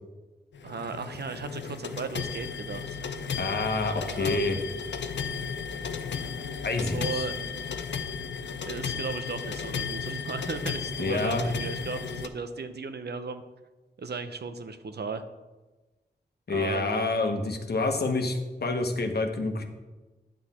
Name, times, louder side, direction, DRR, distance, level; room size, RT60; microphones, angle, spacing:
sound 1, 0.5-12.3, left 6 dB, 85° left, 0.6 m, -34 dB
voice 1, 0.6-3.0 4.1-4.6 6.8-7.3 8.6-13.4 14.0-15.2 16.5-17.1, right 4 dB, 65° right, 9 dB, 0.7 m, -36 dB
voice 2, 3.4-4.6 6.6-7.2 11.0-11.4 16.5-19.6, left 3 dB, 65° left, 4 dB, 1.1 m, -28 dB
10.5 x 6.3 x 4.3 m, 1.2 s
wide cardioid pair, 70°, 18 cm